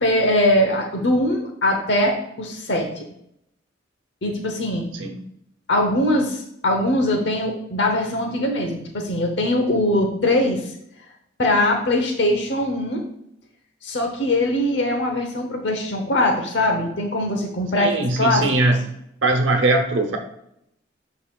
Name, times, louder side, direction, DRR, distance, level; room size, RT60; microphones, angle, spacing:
voice 1, 0.0-3.0 4.2-4.9 5.7-10.7 11.4-13.0 13.8-18.5, left 1 dB, 70° left, 2 dB, 0.9 m, -21 dB
voice 2, 17.8-18.8 19.2-20.2, right 2 dB, 90° right, 4 dB, 0.9 m, -20 dB
11.5 x 4.1 x 2.4 m, 0.76 s
head